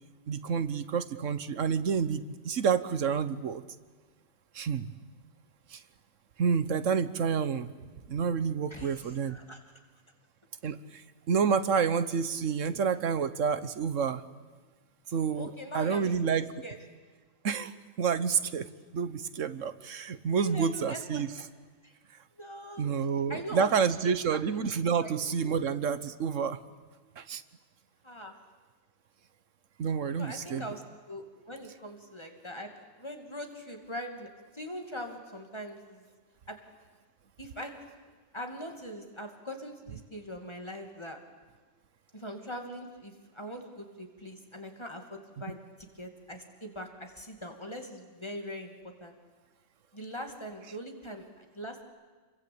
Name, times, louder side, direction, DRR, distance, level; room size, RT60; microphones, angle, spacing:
voice 1, 0.3-3.6 4.5-4.9 5.7-5.8 6.4-7.7 8.1-9.4 10.6-14.2 15.1-16.5 17.4-21.3 22.8-26.6 27.2-27.4 29.8-30.7 45.5-45.6, right 6 dB, 85° right, 13 dB, 1.4 m, -29 dB
voice 2, 8.7-9.6 12.6-12.8 15.3-16.8 20.3-21.2 21.8-21.9 22.4-23.8 24.3-24.4 25.0-25.1 25.4-25.5 28.0-28.4 30.2-30.8 31.1-32.7 33.0-34.3 34.5-36.0 36.5-36.6 37.4-37.7 38.3-41.2 42.1-45.6 46.0-48.7 49.0-49.1 49.9-51.8, equal, 20° left, 3 dB, 2.6 m, -42 dB
29.0 x 22.5 x 8.7 m, 1.4 s
omnidirectional pair, 1.3 m